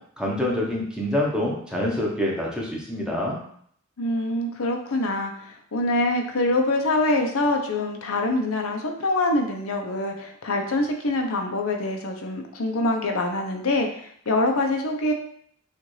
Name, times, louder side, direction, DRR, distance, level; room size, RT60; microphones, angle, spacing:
voice 1, 0.2-3.4, left 1 dB, 5° right, -3 dB, 0.9 m, -26 dB
voice 2, 4.0-15.1, left 2 dB, 75° left, 3 dB, 0.7 m, -25 dB
6.4 x 2.5 x 3.2 m, 0.64 s
head